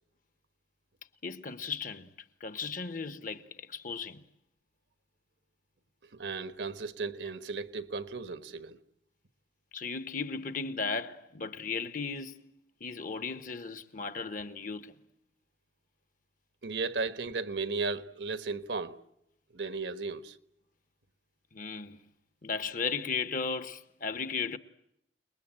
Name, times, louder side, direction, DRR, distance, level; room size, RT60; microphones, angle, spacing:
voice 1, 1.2-2.1 2.4-4.2 9.7-12.5 12.8-14.9 21.5-22.0 22.4-24.6, left 5 dB, 50° left, 1.2 m, -36 dB
voice 2, 6.1-8.8 16.6-19.0 19.5-20.4, right 4 dB, 75° right, 1.4 m, -35 dB
29.0 x 21.0 x 8.9 m
head